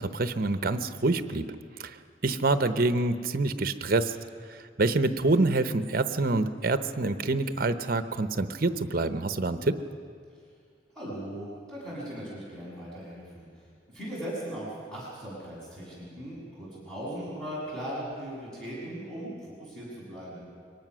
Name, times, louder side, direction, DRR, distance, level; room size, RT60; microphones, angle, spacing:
voice 1, 0.0-1.5 1.8-2.0 2.2-4.2 4.5-9.8, right 2 dB, 50° right, 10 dB, 0.8 m, -26 dB
voice 2, 11.0-20.4, right 1 dB, 5° left, -8 dB, 6.9 m, -38 dB
23.5 x 18.5 x 6.2 m, 2.2 s
head